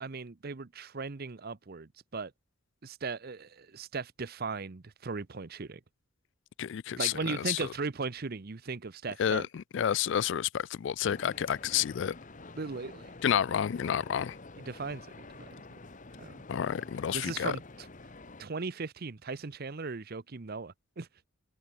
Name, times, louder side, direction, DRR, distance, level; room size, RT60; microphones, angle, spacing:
voice 1, 0.0-2.3 2.8-5.8 7.0-9.5 12.6-13.1 14.6-15.5 16.2-16.3 17.1-17.9 18.4-21.3, right 4 dB, 50° right, 0.7 m, -38 dB
voice 2, 6.6-7.6 9.2-12.2 13.2-14.4 16.5-17.6, left 9 dB, 60° left, 0.3 m, -30 dB
sound 1, 11.0-18.4, left 2 dB, 40° left, 1.5 m, -49 dB
head